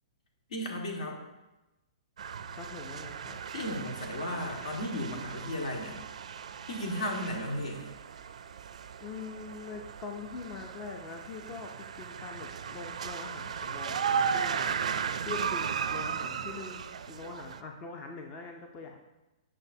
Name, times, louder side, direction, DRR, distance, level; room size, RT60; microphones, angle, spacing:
voice 1, 0.5-1.2 3.5-6.0 6.7-7.9, left 1 dB, 70° left, 1 dB, 1.6 m, -35 dB
sound 1, 2.2-17.6, right 7 dB, 80° right, 0.4 m, -36 dB
voice 2, 2.5-3.4 9.0-11.7 12.0-15.0 15.3-19.0, left 4 dB, 20° left, 3 dB, 0.4 m, -43 dB
8.7 x 6.2 x 2.7 m, 1.0 s
hypercardioid pair, 170°, 4 cm